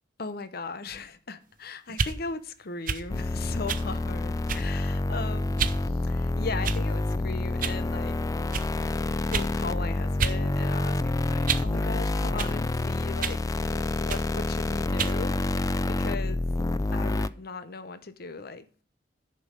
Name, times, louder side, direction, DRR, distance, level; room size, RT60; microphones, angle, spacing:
voice 1, 0.2-5.7 6.0-8.2 9.3-13.4 13.7-16.4 16.9-18.8, left 3 dB, 55° left, 0.8 m, -38 dB
sound 1, 1.9-2.2 2.9-3.1 3.7-3.9 4.5-4.8 5.6-5.8 6.6-7.0 7.6-7.8 8.5-8.7 9.3-9.5 10.2-10.4 10.8-11.7 12.4-12.6 13.2-13.4 14.1-14.3 15.0-15.2, right 6 dB, 50° right, 0.7 m, -30 dB
sound 2, 3.1-17.3, left 2 dB, 20° left, 0.4 m, -28 dB
10.0 x 5.4 x 6.3 m
head